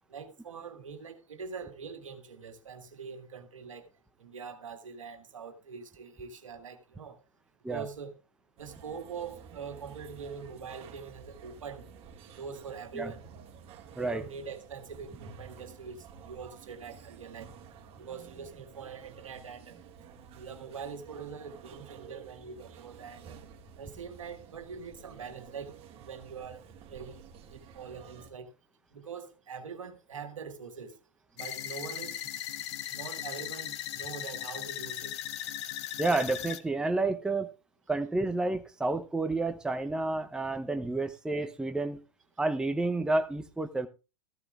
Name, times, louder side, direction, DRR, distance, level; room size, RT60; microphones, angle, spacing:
voice 1, 0.1-3.9 4.2-7.2 7.7-8.1 8.6-11.8 12.3-13.3 14.0-17.5 18.0-19.8 20.3-23.4 23.7-27.2 27.5-28.5 28.9-31.0 31.3-32.5 32.9-35.2, right 6 dB, 80° right, 1.7 m, -43 dB
sound 1, 8.6-28.3, right 6 dB, 35° right, 2.0 m, -51 dB
sound 2, 31.4-36.6, left 12 dB, 60° left, 1.1 m, -38 dB
voice 2, 36.0-37.5 37.9-42.0 42.4-43.9, right 2 dB, 5° right, 0.7 m, -30 dB
14.5 x 13.0 x 2.4 m
figure-of-eight pair, 95°, 17 cm